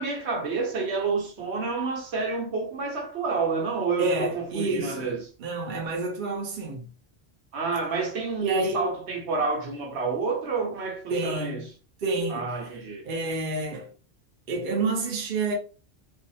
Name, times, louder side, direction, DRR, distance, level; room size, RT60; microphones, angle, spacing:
voice 1, 0.0-5.2 7.5-11.6 12.3-13.1, right 4 dB, 75° right, 1.1 m, -29 dB
voice 2, 4.0-6.9 8.4-8.9 11.1-11.7 12.0-12.8 13.0-13.9 14.5-15.5, right 3 dB, 55° right, 0.8 m, -29 dB
2.4 x 2.4 x 2.7 m
omnidirectional pair, 1.1 m